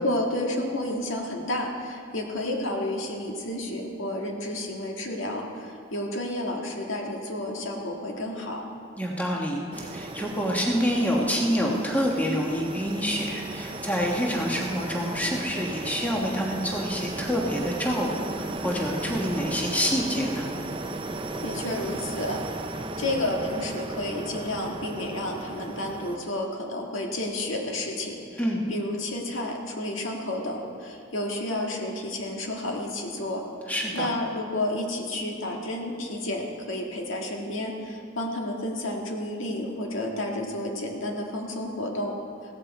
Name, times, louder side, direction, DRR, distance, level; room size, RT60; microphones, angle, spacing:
voice 1, 0.0-8.6 21.4-22.4 23.0-28.4 28.7-33.4 33.9-42.1, left 1 dB, 80° left, 1 dB, 1.7 m, -31 dB
voice 2, 9.0-18.1 18.4-20.5 28.4-28.6 33.7-34.1, equal, 10° left, -2 dB, 1.3 m, -27 dB
sound 1, 9.7-26.2, right 2 dB, 25° right, 0.5 m, -35 dB
16.0 x 14.0 x 4.2 m, 2.4 s
head